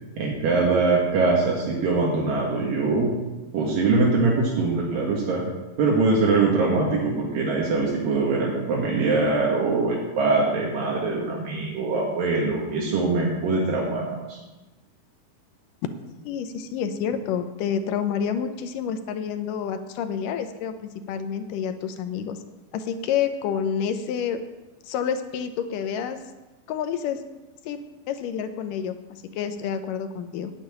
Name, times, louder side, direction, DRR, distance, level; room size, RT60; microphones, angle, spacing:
voice 1, 0.2-3.1 3.5-5.4 5.8-14.4, right 3 dB, 75° right, -3 dB, 3.4 m, -23 dB
voice 2, 16.2-22.4 22.7-24.4 24.8-26.2 26.7-27.2 27.6-27.8 28.1-30.5, left 7 dB, 80° left, 8 dB, 2.3 m, -28 dB
9.9 x 6.8 x 9.0 m, 1.1 s
omnidirectional pair, 4.0 m